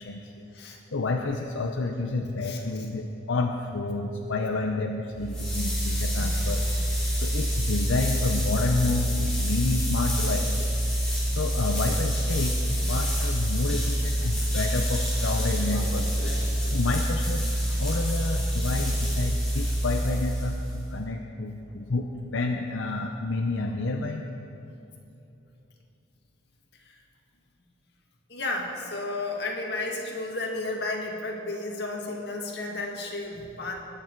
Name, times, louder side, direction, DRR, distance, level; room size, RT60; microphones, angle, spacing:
voice 1, 0.0-10.8 11.0-16.1 16.7-24.2, left 3 dB, 75° left, 2 dB, 0.7 m, -30 dB
sound 1, 5.1-20.9, equal, 5° left, 3.4 m, -26 dB
voice 2, 15.5-15.9 16.2-16.8 28.3-33.7, left 2 dB, 55° left, 0 dB, 1.9 m, -33 dB
21.0 x 8.9 x 4.6 m, 2.8 s
head